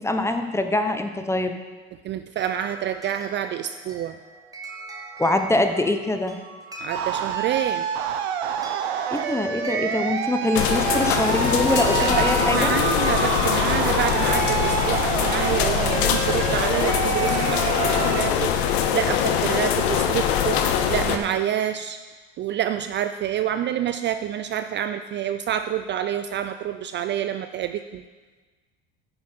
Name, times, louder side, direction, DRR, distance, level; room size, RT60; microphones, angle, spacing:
voice 1, 0.0-1.5 5.2-6.4 9.1-12.8, left 2 dB, 10° left, 6 dB, 0.8 m, -24 dB
voice 2, 2.0-4.2 6.8-7.9 12.0-22.0 22.4-28.0, right 10 dB, 35° right, 10 dB, 0.4 m, -28 dB
sound 1, 2.4-14.9, right 3 dB, 10° right, 1.7 m, -38 dB
sound 2, 6.9-18.2, right 8 dB, 85° right, 0.7 m, -27 dB
sound 3, 10.5-21.2, left 9 dB, 80° left, 0.9 m, -23 dB
9.8 x 7.0 x 4.4 m, 1.3 s
hypercardioid pair, 85°, 31 cm